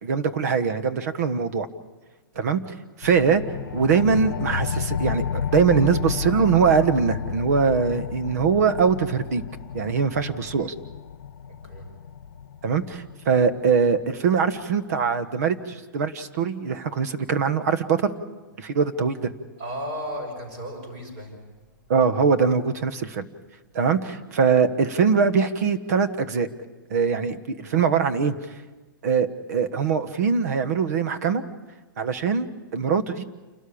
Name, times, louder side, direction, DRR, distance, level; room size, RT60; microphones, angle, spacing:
voice 1, 0.0-1.7 2.4-2.6 3.0-3.4 3.7-9.4 9.7-10.7 12.6-18.1 18.6-19.3 21.9-23.3 23.7-26.5 26.9-28.3 29.0-31.4 32.0-32.5 32.7-33.2, right 6 dB, 50° right, 11 dB, 1.3 m, -22 dB
sound 1, 3.0-14.1, left 7 dB, 85° left, 0.8 m, -32 dB
voice 2, 19.6-21.4, equal, 30° right, 2 dB, 6.4 m, -34 dB
28.5 x 13.0 x 8.6 m, 1.2 s
hypercardioid pair, 170°, 11 cm